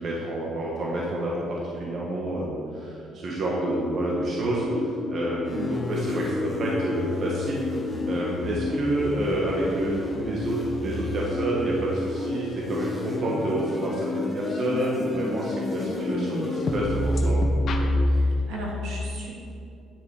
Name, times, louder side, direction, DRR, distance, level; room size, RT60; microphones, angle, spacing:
voice 1, 0.0-7.6 8.0-17.5, right 1 dB, 50° right, -4 dB, 1.4 m, -29 dB
sound 1, 3.4-18.1, left 2 dB, 55° left, 0.9 m, -30 dB
sound 2, 5.4-17.3, left 1 dB, 15° left, 1.2 m, -35 dB
voice 2, 15.8-16.4 18.1-19.3, right 2 dB, 80° right, -3 dB, 2.5 m, -36 dB
10.0 x 6.7 x 4.8 m, 2.6 s
cardioid pair, 115°, 0 cm